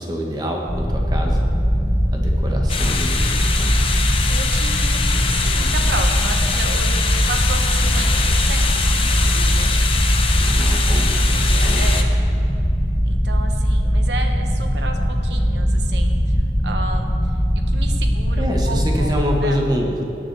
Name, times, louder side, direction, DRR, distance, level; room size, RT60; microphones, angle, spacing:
voice 1, 0.0-1.5 2.1-3.8 10.4-11.2 11.6-11.9 18.4-20.0, equal, 25° right, 0 dB, 1.2 m, -26 dB
sound 1, 0.7-19.1, equal, 10° left, 1.0 m, -20 dB
sound 2, 2.7-12.0, left 5 dB, 30° left, 0.7 m, -24 dB
voice 2, 2.9-3.4 3.9-9.8 10.8-10.9 11.2-12.2 13.0-16.2 16.6-17.1 17.7-19.1 19.4-19.6, right 3 dB, 75° right, 4 dB, 1.0 m, -33 dB
19.0 x 6.8 x 3.4 m, 3.0 s
head